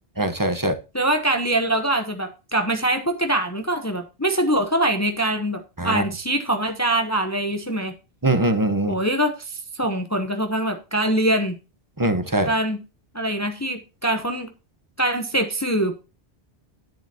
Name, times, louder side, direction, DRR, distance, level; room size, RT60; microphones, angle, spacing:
voice 1, 0.2-0.8 5.8-6.0 8.2-9.0 12.0-12.5, right 1 dB, 20° right, 10 dB, 1.0 m, -22 dB
voice 2, 0.9-7.9 8.9-11.6 12.4-12.8 13.1-14.5 15.0-16.0, right 1 dB, 15° left, 6 dB, 0.9 m, -23 dB
10.5 x 10.0 x 2.9 m, 0.30 s
omnidirectional pair, 1.1 m